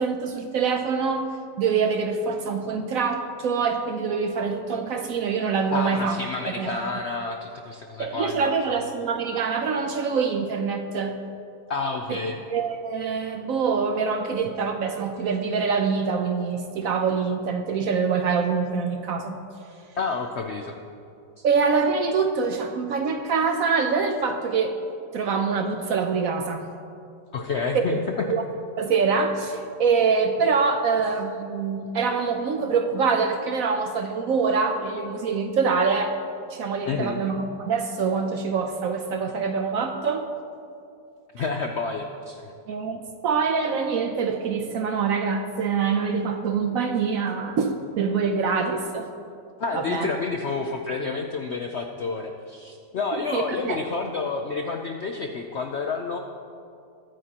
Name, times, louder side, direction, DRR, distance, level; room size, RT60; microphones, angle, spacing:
voice 1, 0.0-6.2 6.6-6.8 8.0-11.2 12.1-12.2 12.5-19.4 21.4-24.8 25.1-26.7 27.7-28.0 28.3-28.4 28.8-36.2 36.5-40.3 42.7-49.1 49.7-50.1 53.1-53.8, right 5 dB, 65° right, 6 dB, 0.9 m, -25 dB
voice 2, 5.7-8.6 11.7-12.4 19.9-20.7 21.4-21.5 27.3-28.3 36.9-37.2 41.3-42.5 49.6-56.2, left 4 dB, 65° left, 3 dB, 0.6 m, -29 dB
21.5 x 9.2 x 2.9 m, 2.5 s
omnidirectional pair, 1.9 m